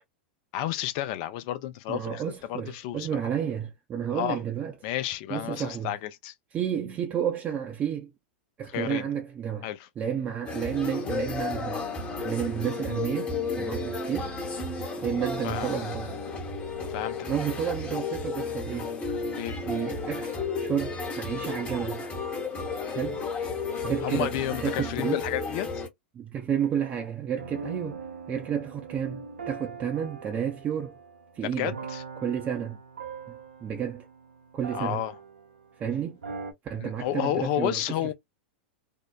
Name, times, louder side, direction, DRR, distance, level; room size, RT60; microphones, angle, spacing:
voice 1, 0.5-2.2 2.5-3.1 4.1-4.4 4.8-6.3 8.7-9.1 9.6-9.9 15.4-15.8 16.9-17.3 19.3-19.6 24.0-25.8 31.6-32.0 34.7-35.1 36.8-38.1, left 13 dB, 50° left, 0.4 m, -31 dB
voice 2, 1.9-4.7 5.3-5.9 6.5-8.1 8.6-9.7 10.0-11.8 12.2-14.3 15.0-16.1 17.3-18.9 19.7-22.0 22.9-23.2 23.8-24.3 24.6-25.2 26.1-31.0 31.3-31.8 32.2-32.8 33.6-34.1 34.5-35.0 35.8-36.2 36.6-38.1, right 8 dB, 25° right, 0.5 m, -31 dB
sound 1, 10.5-25.9, left 4 dB, 20° left, 0.9 m, -33 dB
sound 2, 27.4-35.8 36.2-36.5, right 4 dB, 85° right, 0.6 m, -42 dB
2.7 x 2.0 x 2.2 m
hypercardioid pair, 95°, 6 cm